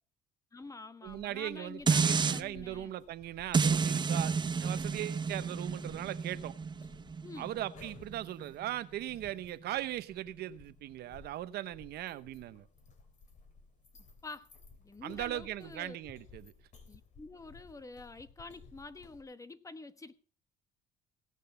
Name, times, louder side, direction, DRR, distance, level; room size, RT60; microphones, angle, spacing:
voice 1, 0.5-2.9 7.2-7.6 14.2-14.5 14.8-16.0 16.9-20.2, left 3 dB, 20° left, 1.1 m, -47 dB
sound 1, 1.0-19.2, left 4 dB, 45° left, 2.9 m, -58 dB
voice 2, 1.0-4.3 4.6-6.5 7.4-12.7 15.0-16.5, right 13 dB, 70° right, 0.9 m, -39 dB
sound 2, 1.9-2.4 3.5-8.7 9.1-9.2, right 5 dB, 25° right, 0.7 m, -31 dB
17.5 x 6.5 x 6.7 m
cardioid pair, 110°, 17 cm